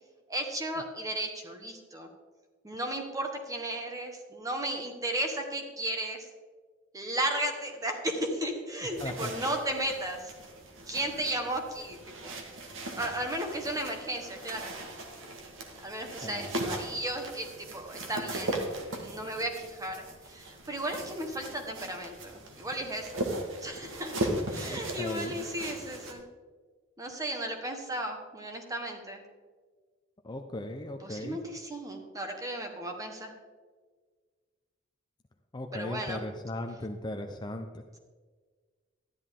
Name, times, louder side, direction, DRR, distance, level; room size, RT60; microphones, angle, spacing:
voice 1, 0.3-2.1 2.6-6.2 6.9-10.3 10.9-12.4 13.0-14.8 15.8-18.6 19.0-23.3 23.6-24.1 24.5-26.3 27.0-29.2 31.0-33.3 35.7-36.2, right 1 dB, 15° right, 3 dB, 1.3 m, -35 dB
sound 1, 8.9-26.1, right 1 dB, 65° right, 1.6 m, -38 dB
voice 2, 9.0-9.3 16.2-16.6 24.6-25.5 30.2-31.4 35.5-37.8, left 1 dB, 20° left, 4 dB, 0.5 m, -37 dB
12.5 x 10.5 x 3.7 m, 1.5 s
head